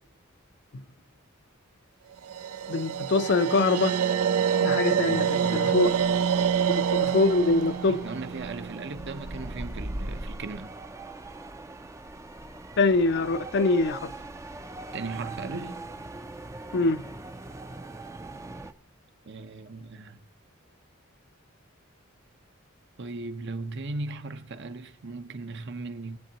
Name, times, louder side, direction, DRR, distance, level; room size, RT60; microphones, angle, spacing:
sound 1, 2.2-9.4, right 7 dB, 90° right, 0.4 m, -27 dB
voice 1, 2.7-3.9 4.6-5.9 6.9-8.0 12.8-14.1 16.7-17.0, left 3 dB, 55° left, 0.5 m, -24 dB
voice 2, 4.9-6.1 7.9-10.7 14.9-15.8 19.2-20.3 23.0-26.2, right 3 dB, 60° right, 0.8 m, -38 dB
sound 2, 5.8-18.7, right 2 dB, 15° right, 0.5 m, -41 dB
21.0 x 8.2 x 2.9 m
head